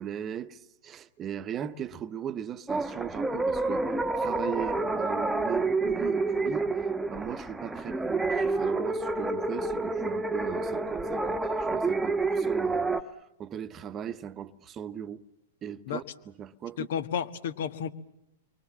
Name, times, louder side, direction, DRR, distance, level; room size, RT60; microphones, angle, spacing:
voice 1, 0.0-3.9 4.1-15.2 15.6-16.9, right 9 dB, 25° right, 1.0 m, -38 dB
sound 1, 2.7-13.0, right 3 dB, 5° right, 1.2 m, -29 dB
voice 2, 16.8-17.9, left 8 dB, 60° left, 1.5 m, -32 dB
29.5 x 23.5 x 7.5 m
hypercardioid pair, 105°, 0 cm